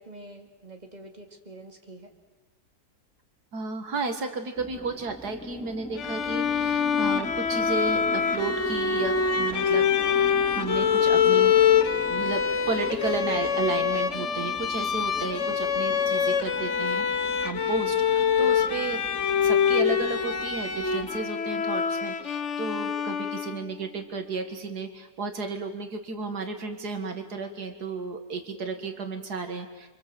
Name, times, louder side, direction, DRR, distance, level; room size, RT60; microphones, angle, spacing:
voice 1, 0.0-2.1 23.1-23.3, right 1 dB, 25° right, 2 dB, 3.1 m, -47 dB
voice 2, 3.5-11.5 12.1-19.0 19.4-29.9, right 4 dB, 85° right, 6 dB, 2.4 m, -33 dB
sound 1, 4.6-21.2, equal, 5° left, 1.7 m, -42 dB
Bowed string instrument, 6.0-23.8, left 7 dB, 50° left, 1.3 m, -25 dB
30.0 x 25.0 x 7.8 m, 1.2 s
omnidirectional pair, 1.7 m